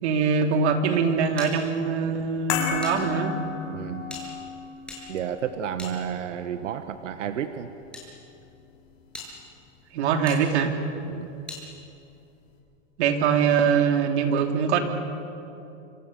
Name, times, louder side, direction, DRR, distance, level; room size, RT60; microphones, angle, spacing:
voice 1, 0.0-3.4 9.9-10.7 13.0-14.8, right 6 dB, 65° right, 4 dB, 3.3 m, -23 dB
sound 1, 1.4-3.0 3.2-3.3 4.0-6.5 7.3-8.1 8.6-8.7 9.1-9.3 10.3-10.4 11.5-11.6, left 2 dB, 5° left, 7.3 m, -42 dB
sound 2, 2.5-8.9 9.2-9.3, left 7 dB, 60° left, 7.1 m, -35 dB
voice 2, 3.7-4.1 5.1-7.7 11.1-11.3, right 9 dB, 80° right, 9 dB, 1.4 m, -31 dB
29.5 x 26.5 x 6.9 m, 2.8 s
hypercardioid pair, 135°, 37 cm